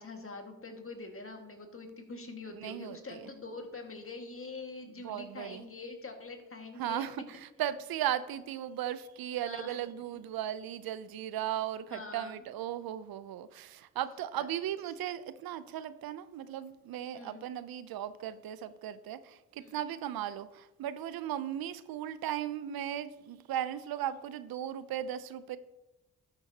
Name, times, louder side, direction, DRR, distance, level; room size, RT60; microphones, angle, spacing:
voice 1, 0.0-7.0 9.4-9.8 11.9-12.4 14.4-14.5 17.1-17.4 19.6-19.8, left 3 dB, 35° left, 1.8 m, -44 dB
voice 2, 2.5-3.3 5.0-5.7 6.8-25.6, right 11 dB, 75° right, 0.6 m, -37 dB
12.0 x 6.9 x 2.8 m
supercardioid pair, 45°, 36 cm